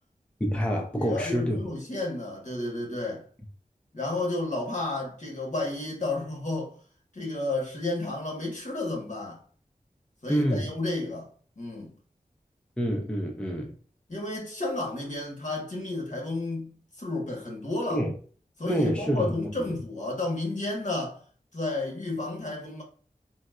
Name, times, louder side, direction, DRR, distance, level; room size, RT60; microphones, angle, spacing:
voice 1, 0.4-1.6 10.3-10.7 12.8-13.7 17.9-18.1 18.6-19.3, equal, 5° left, 0.5 m, -27 dB
voice 2, 0.9-3.2 3.9-6.7 7.1-9.4 10.2-11.3 11.6-11.9 14.1-18.0 18.6-21.2 21.5-22.8, left 2 dB, 55° left, 1.1 m, -32 dB
3.9 x 2.1 x 2.3 m
wide cardioid pair, 65°, 15 cm